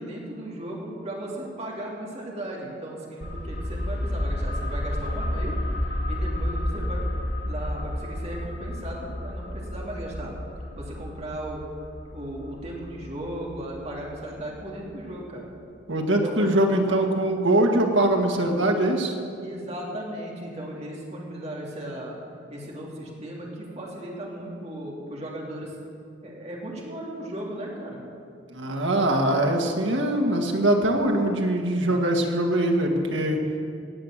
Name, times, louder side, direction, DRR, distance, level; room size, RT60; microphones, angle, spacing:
voice 1, 0.0-5.5 6.1-7.1 7.4-10.3 10.8-11.6 12.1-15.5 16.2-17.0 19.4-22.2 22.5-25.7 26.2-28.0, right 1 dB, 35° right, -3 dB, 3.1 m, -36 dB
sound 1, 3.2-14.6 14.9-15.0, left 1 dB, 70° left, 1.9 m, -31 dB
voice 2, 15.9-19.2 28.5-33.5, right 1 dB, 90° right, 2 dB, 1.9 m, -22 dB
17.5 x 8.2 x 7.4 m, 2.4 s
head